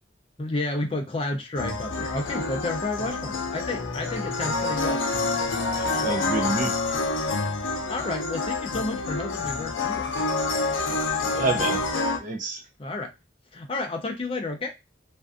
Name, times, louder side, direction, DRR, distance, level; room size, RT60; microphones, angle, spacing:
voice 1, 0.4-5.0 7.9-10.1 12.8-13.1 13.5-14.7, left 2 dB, 30° left, 0.4 m, -31 dB
sound 1, 1.5-12.2, left 3 dB, 80° left, 0.5 m, -27 dB
voice 2, 5.7-6.7 11.3-11.9 12.2-12.6, right 3 dB, 40° right, 0.5 m, -28 dB
2.5 x 2.2 x 2.4 m
head